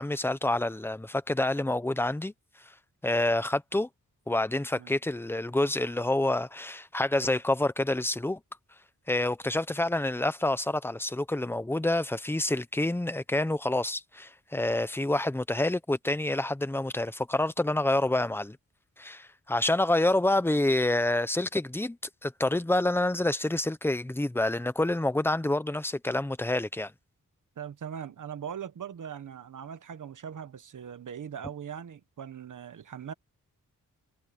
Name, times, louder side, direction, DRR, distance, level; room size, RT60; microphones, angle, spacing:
voice 1, 0.0-2.3 3.0-3.9 4.3-8.4 9.1-18.6 19.0-22.0 22.2-26.9, left 1 dB, 5° left, 0.7 m, -27 dB
voice 2, 27.6-33.1, right 8 dB, 70° right, 1.2 m, -40 dB
wide cardioid pair, 180°, 32 cm